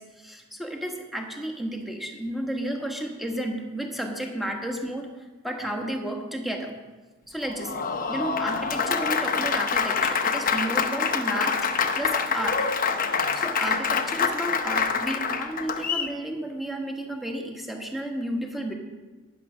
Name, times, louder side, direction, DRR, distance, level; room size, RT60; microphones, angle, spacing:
voice 1, 0.0-6.8 7.3-7.8 8.1-11.7 12.0-12.7 13.3-18.7, right 1 dB, ahead, 1 dB, 1.5 m, -32 dB
Applause, 7.4-16.1, left 5 dB, 45° left, 0.8 m, -26 dB
11.0 x 9.9 x 6.1 m, 1.2 s
head